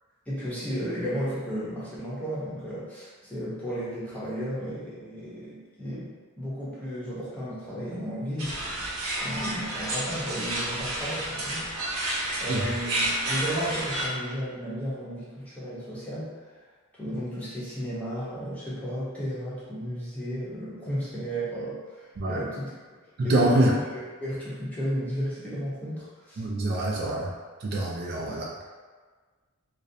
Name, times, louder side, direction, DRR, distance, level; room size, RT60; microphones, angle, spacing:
voice 1, 0.3-8.6 9.1-16.3 16.9-22.7 23.2-26.4 28.2-28.4, equal, 5° left, -10 dB, 0.7 m, -34 dB
sound 1, 8.4-14.1, right 1 dB, 75° right, 0.7 m, -30 dB
voice 2, 23.2-23.7 26.4-27.3 27.6-28.7, right 1 dB, 50° right, -3 dB, 0.4 m, -25 dB
2.4 x 2.0 x 2.6 m, 1.4 s
head